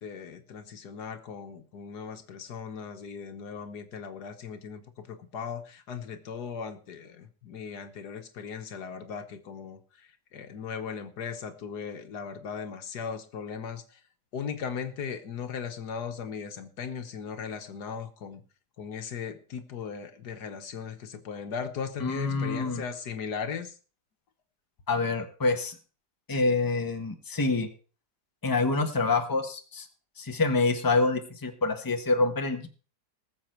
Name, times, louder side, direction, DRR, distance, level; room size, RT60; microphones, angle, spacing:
voice 1, 0.0-14.0 14.3-18.4 18.8-23.8, left 6 dB, 70° left, 7 dB, 1.7 m, -38 dB
voice 2, 22.0-22.8 24.9-25.7 26.3-27.7 28.4-29.9 30.2-32.7, left 3 dB, 15° left, 5 dB, 1.3 m, -26 dB
20.0 x 7.1 x 4.5 m, 0.37 s
omnidirectional pair, 1.8 m